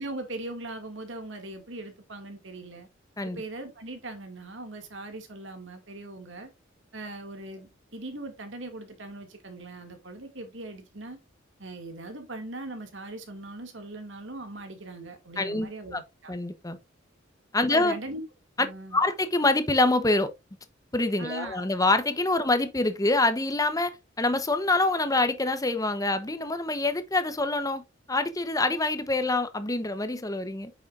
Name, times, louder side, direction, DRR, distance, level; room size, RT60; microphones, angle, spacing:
voice 1, 0.0-2.9 3.2-6.5 6.9-11.2 11.6-16.3 17.6-18.2 18.6-19.0 21.2-21.7, right 2 dB, 70° right, 2.3 m, -40 dB
voice 2, 15.4-16.0 16.3-16.8 17.5-18.0 18.9-20.3 20.9-27.8 28.1-30.7, left 2 dB, 20° left, 0.9 m, -26 dB
8.8 x 6.3 x 2.5 m
head